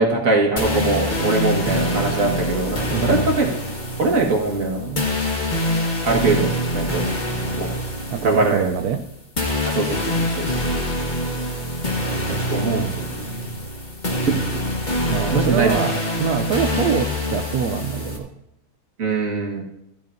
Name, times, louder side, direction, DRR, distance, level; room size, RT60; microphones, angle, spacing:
voice 1, 0.0-3.5 4.0-5.1 6.0-6.5 6.7-7.0 7.3-7.7 8.2-8.7 9.7-10.5 12.3-13.5 15.3-15.7 19.0-19.6, right 3 dB, 55° right, 1 dB, 2.1 m, -22 dB
sound 1, 0.6-18.2, left 1 dB, 30° left, 1.7 m, -25 dB
voice 2, 2.9-3.2 6.3-6.4 7.0-7.1 8.1-9.0 15.0-18.3, right 8 dB, 75° right, 6 dB, 1.1 m, -25 dB
14.5 x 14.0 x 2.7 m, 0.87 s
omnidirectional pair, 1.8 m